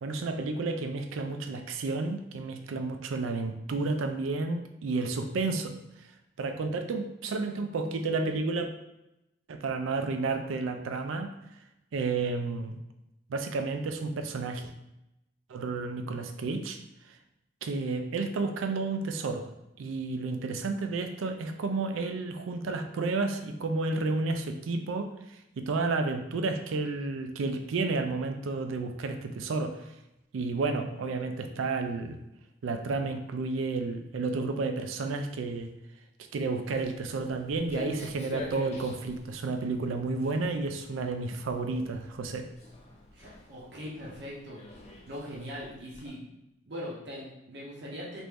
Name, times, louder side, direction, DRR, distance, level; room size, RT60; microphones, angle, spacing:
voice 1, 0.0-5.7 6.4-8.7 9.5-11.3 11.9-12.8 13.3-14.7 15.5-16.8 17.6-19.5 19.8-25.1 25.6-29.8 30.3-32.2 32.6-35.7 36.3-42.5, right 3 dB, 85° right, 6 dB, 0.4 m, -31 dB
Walk footsteps, 36.6-46.1, left 1 dB, 30° left, 0.4 m, -46 dB
voice 2, 43.1-44.6 45.1-46.3 46.7-48.2, equal, 60° right, -5 dB, 0.8 m, -41 dB
3.0 x 2.5 x 3.4 m, 0.88 s
head